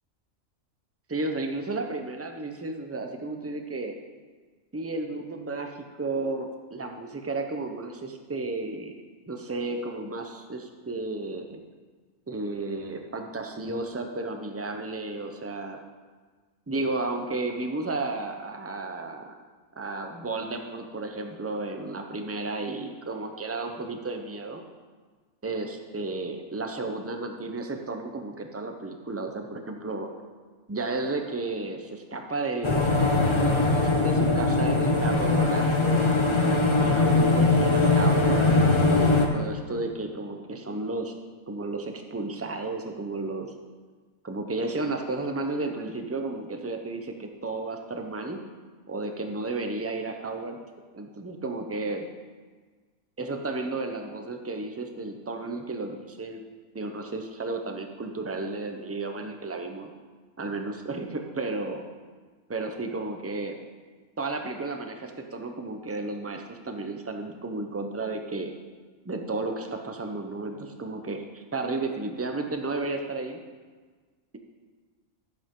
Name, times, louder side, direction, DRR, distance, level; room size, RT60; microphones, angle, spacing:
voice 1, 1.1-4.0 4.7-8.9 9.3-11.6 12.3-15.8 16.7-19.3 19.8-24.6 25.4-30.1 30.7-36.2 36.8-41.2 41.5-43.5 44.2-48.4 48.9-50.6 50.9-52.0 53.2-56.5 56.7-59.9 60.4-61.8 62.5-63.6 64.2-68.5 69.0-73.4, right 3 dB, 15° right, 4 dB, 0.5 m, -33 dB
sound 1, 32.6-39.3, left 2 dB, 25° left, 0.8 m, -21 dB
12.0 x 7.8 x 3.7 m, 1.4 s
omnidirectional pair, 1.4 m